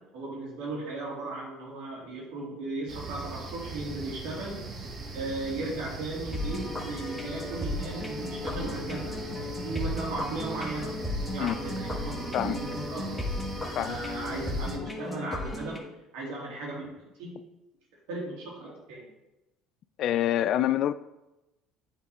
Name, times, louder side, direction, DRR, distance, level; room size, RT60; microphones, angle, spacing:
voice 1, 0.0-4.7 5.1-11.0 11.3-13.3 13.7-15.8 16.1-17.4 18.1-19.1, right 2 dB, 80° right, 2.6 m, -36 dB
sound 1, 2.9-14.8, right 3 dB, 45° right, 1.3 m, -40 dB
sound 2, 6.3-15.8, left 1 dB, 5° left, 1.3 m, -35 dB
voice 2, 20.0-20.9, left 12 dB, 60° left, 0.3 m, -26 dB
8.2 x 3.7 x 4.2 m
supercardioid pair, 95°, 0 cm